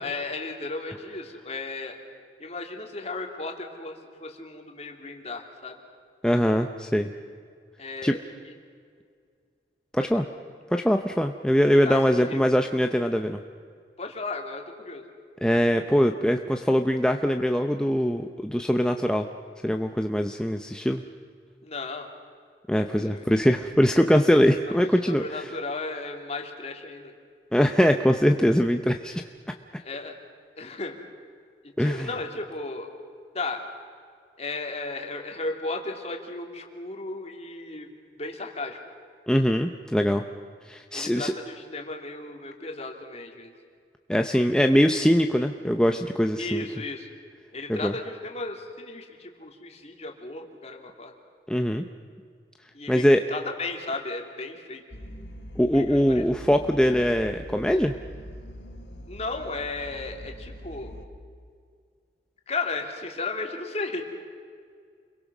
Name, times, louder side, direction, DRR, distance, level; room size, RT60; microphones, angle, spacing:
voice 1, 0.0-2.0 2.4-5.8 7.8-8.6 10.0-10.2 11.8-12.4 14.0-15.0 21.6-22.1 23.0-23.2 24.7-24.8 25.0-27.1 29.8-30.1 30.6-31.0 31.6-32.9 33.3-33.6 34.4-38.8 40.9-43.5 46.4-47.1 47.5-51.1 52.7-54.8 55.7-56.2 59.1-60.9 62.5-64.0, left 3 dB, 35° left, 3 dB, 2.9 m, -35 dB
voice 2, 6.2-7.1 8.0-8.1 9.9-10.3 10.7-13.4 15.4-19.3 19.6-21.0 22.7-25.2 27.5-29.2 31.8-32.1 39.3-40.2 40.7-41.3 44.1-46.6 47.7-47.9 51.5-51.8 52.9-53.2 55.6-57.9, equal, 5° left, 5 dB, 0.7 m, -22 dB
sound 1, 54.9-61.1, equal, 75° left, 2.4 m, -42 dB
29.5 x 22.5 x 6.1 m, 2.1 s
head